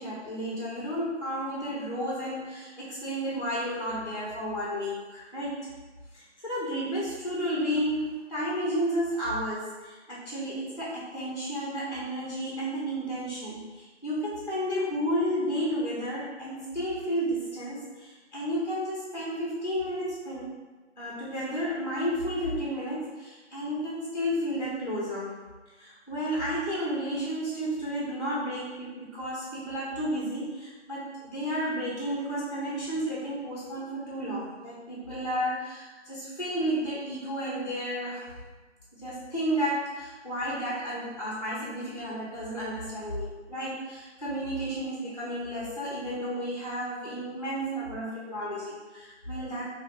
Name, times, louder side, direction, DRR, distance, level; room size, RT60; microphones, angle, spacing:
voice 1, 0.0-5.7 6.1-20.5 21.0-25.4 25.8-38.4 38.9-49.6, equal, 40° left, -7 dB, 0.4 m, -32 dB
2.5 x 2.5 x 2.5 m, 1.3 s
figure-of-eight pair, 165°, 35 cm